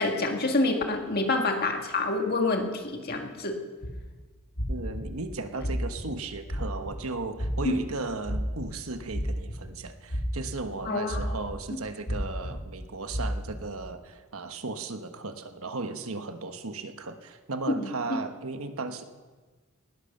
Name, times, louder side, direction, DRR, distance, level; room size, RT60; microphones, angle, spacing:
voice 1, 0.0-3.6 7.6-7.7 10.9-11.2 17.8-17.9, left 2 dB, 45° left, 3 dB, 2.0 m, -27 dB
sound 1, 3.8-4.0 4.6-5.0 5.6-6.0 6.4-6.9 7.4-7.8 8.2-8.7 9.1-9.7 10.1-10.5 11.1-11.5 12.1-12.5 13.1-13.5, equal, 85° left, 7.3 m, -32 dB
voice 2, 4.7-19.0, right 3 dB, 70° right, 8 dB, 1.3 m, -36 dB
19.0 x 11.0 x 6.7 m, 1.3 s
head